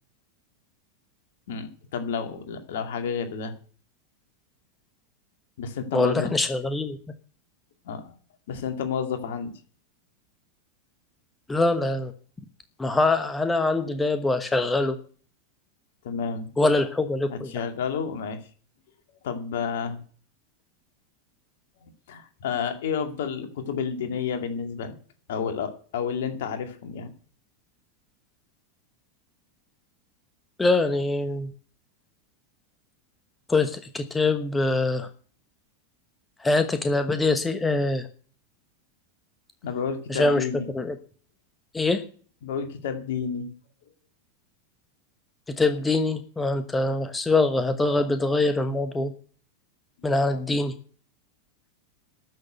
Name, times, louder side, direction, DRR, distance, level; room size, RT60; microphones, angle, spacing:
voice 1, 1.5-3.5 5.6-6.3 7.9-8.1 8.5-9.5 16.0-16.5 17.3-18.4 19.2-20.0 21.8-25.0 25.3-27.1 39.6-40.7 42.4-43.5 47.9-48.0, left 6 dB, 55° left, 7 dB, 2.2 m, -30 dB
voice 2, 5.9-7.0 11.5-12.1 12.8-15.0 16.6-17.5 30.6-31.5 33.5-35.1 36.4-38.1 40.1-40.5 40.7-40.9 41.7-42.0 45.6-49.1 50.0-50.7, left 2 dB, 10° left, 9 dB, 1.1 m, -23 dB
13.5 x 6.5 x 9.1 m, 0.43 s
figure-of-eight pair, 90°, 0 cm